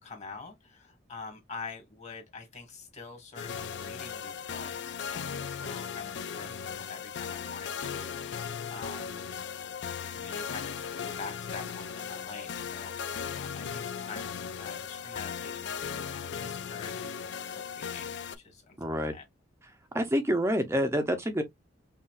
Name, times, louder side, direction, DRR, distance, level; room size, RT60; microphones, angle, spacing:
voice 1, 0.0-9.3 10.1-17.2 17.5-19.2, left 4 dB, 35° left, 1.6 m, -46 dB
sound 1, 3.4-18.4, left 7 dB, 65° left, 0.4 m, -37 dB
voice 2, 18.8-19.1 19.9-21.4, equal, 15° right, 0.6 m, -27 dB
5.5 x 2.5 x 2.4 m
head